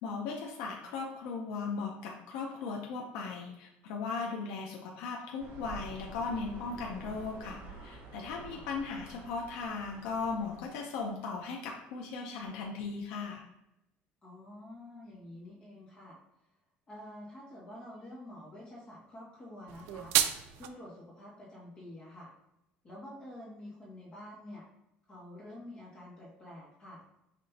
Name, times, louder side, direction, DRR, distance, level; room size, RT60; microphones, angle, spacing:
voice 1, 0.0-13.4, left 4 dB, 85° left, 0 dB, 0.6 m, -37 dB
sound 1, 5.4-10.7, right 3 dB, 55° right, 1.2 m, -48 dB
voice 2, 14.2-16.2 16.9-20.1 20.6-22.3 22.8-24.6 25.1-27.0, left 1 dB, 25° left, -7 dB, 1.7 m, -48 dB
sound 2, 19.7-20.7, right 11 dB, 75° right, 0.4 m, -30 dB
5.9 x 3.1 x 2.8 m, 0.84 s
cardioid pair, 155°, 4 cm